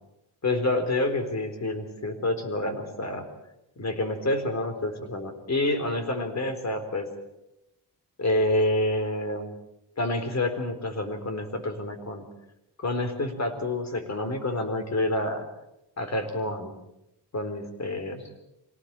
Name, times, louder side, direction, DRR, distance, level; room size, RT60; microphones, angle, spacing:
voice 1, 0.4-3.3 3.8-7.1 8.2-9.6 10.0-12.3 12.8-15.5 16.0-16.8 17.3-18.3, left 1 dB, 40° left, 8 dB, 4.1 m, -28 dB
24.5 x 18.5 x 7.6 m, 0.87 s
cardioid pair, 105°, 42 cm